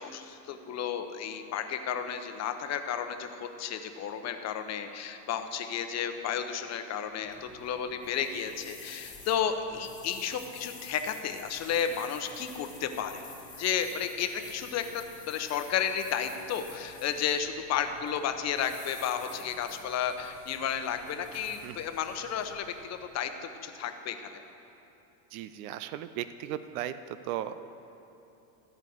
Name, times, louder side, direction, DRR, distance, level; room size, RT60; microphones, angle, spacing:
voice 1, 0.0-13.2 13.6-24.4, left 8 dB, 35° left, 8 dB, 0.9 m, -33 dB
sound 1, 7.1-23.3, left 3 dB, 15° left, 2.1 m, -50 dB
voice 2, 25.3-27.6, right 11 dB, 70° right, 13 dB, 0.7 m, -37 dB
13.5 x 5.4 x 7.8 m, 3.0 s
supercardioid pair, 115°, 44 cm